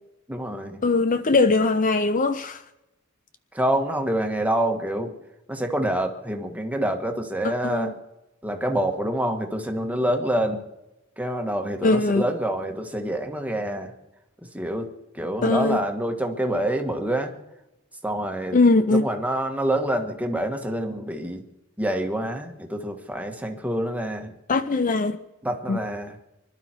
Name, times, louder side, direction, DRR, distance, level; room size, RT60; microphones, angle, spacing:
voice 1, 0.3-0.8 3.5-5.1 5.5-7.9 8.4-10.6 11.2-13.9 14.5-14.9 15.1-17.3 18.0-18.6 18.9-21.4 21.8-24.3 25.4-26.1, right 1 dB, 5° right, 1.6 m, -26 dB
voice 2, 0.8-2.6 7.4-7.9 11.8-12.3 15.4-15.8 18.5-19.1 24.5-25.2 25.7-25.8, left 3 dB, 40° left, 0.6 m, -21 dB
25.0 x 12.5 x 4.5 m
head